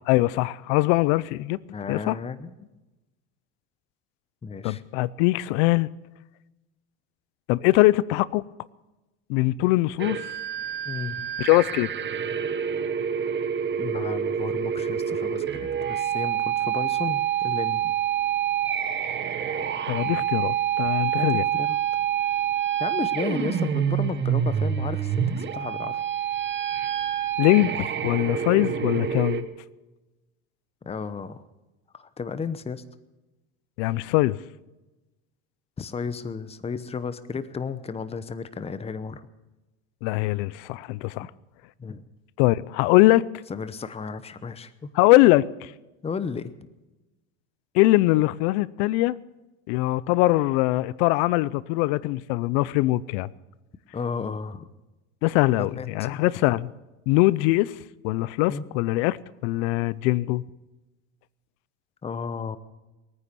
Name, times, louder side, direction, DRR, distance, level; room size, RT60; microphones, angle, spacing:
voice 1, 0.1-1.6 1.9-2.2 4.6-5.9 7.5-8.4 9.3-10.3 11.4-11.9 19.9-21.4 27.4-29.4 33.8-34.4 40.0-41.3 42.4-43.2 44.9-45.7 47.7-49.1 49.7-53.3 55.2-56.7 57.1-57.7 58.0-59.2 59.4-60.4, left 19 dB, 75° left, 0.7 m, -22 dB
voice 2, 1.7-2.7 4.4-4.8 10.8-11.2 13.8-17.9 20.0-20.2 21.1-21.8 22.8-26.0 30.9-31.4 31.9-32.8 35.8-39.2 41.8-42.0 43.5-44.9 46.0-46.7 53.9-54.7 55.6-56.2 58.5-58.6 62.0-62.6, left 5 dB, 20° left, 0.9 m, -33 dB
sound 1, 10.0-29.4, right 9 dB, 35° right, 1.3 m, -27 dB
21.0 x 9.7 x 6.9 m
supercardioid pair, 110°, 34 cm